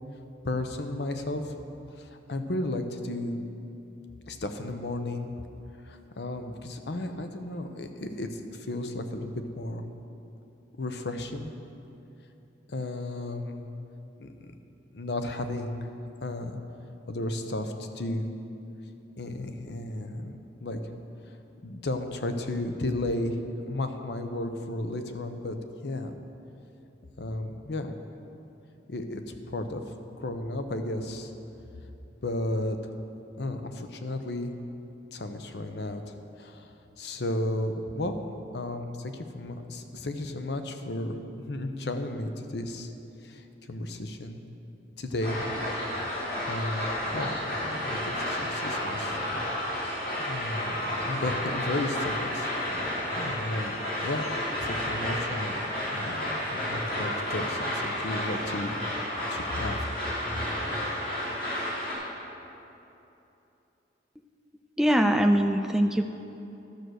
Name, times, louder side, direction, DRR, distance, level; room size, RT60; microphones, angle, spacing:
voice 1, 0.4-1.6 2.0-3.4 4.3-5.3 5.8-9.8 10.8-11.5 12.7-13.6 14.2-14.5 14.9-15.9 16.2-16.6 17.1-18.3 19.2-20.3 20.6-20.8 21.6-23.4 23.7-25.6 25.8-26.2 27.2-27.9 28.9-29.8 30.2-31.3 32.2-32.8 33.4-34.5 35.1-36.0 36.4-36.7 37.0-38.2 38.5-42.9 43.2-44.4 45.0-45.4 46.4-46.9 47.1-47.4 47.6-49.2 50.2-52.5 52.8-54.3 54.6-58.7 59.3-59.8, left 1 dB, 70° left, 7 dB, 0.7 m, -33 dB
sound 1, 45.2-61.9, left 1 dB, 50° left, 2.8 m, -31 dB
voice 2, 64.8-66.0, equal, 5° right, 5 dB, 0.3 m, -22 dB
12.0 x 6.5 x 6.3 m, 2.9 s
head